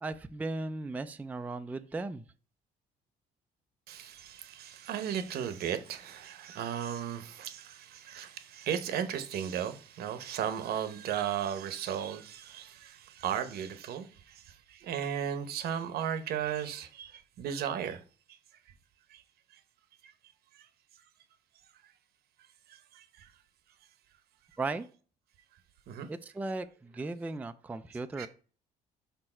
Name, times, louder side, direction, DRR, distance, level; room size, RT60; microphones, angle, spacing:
voice 1, 0.0-2.2 24.6-24.9 26.1-28.3, right 3 dB, 10° right, 0.3 m, -36 dB
voice 2, 3.9-18.0 19.1-19.2 20.0-20.1 20.5-20.7 22.7-23.3 25.9-26.1 28.2-28.3, right 9 dB, 70° right, 0.9 m, -36 dB
5.3 x 4.5 x 4.3 m
cardioid pair, 110°, 17 cm